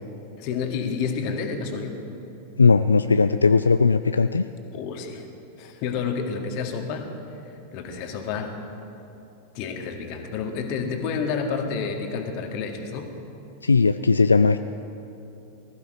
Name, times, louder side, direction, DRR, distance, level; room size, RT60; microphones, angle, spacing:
voice 1, 0.4-2.0 4.7-5.3 5.6-7.1 7.7-8.6 9.5-13.1, left 5 dB, 45° left, 4 dB, 1.9 m, -29 dB
voice 2, 2.6-4.5 13.6-14.6, left 4 dB, 75° left, 11 dB, 0.3 m, -18 dB
19.5 x 15.0 x 5.1 m, 2.9 s
figure-of-eight pair, 90°, 0 cm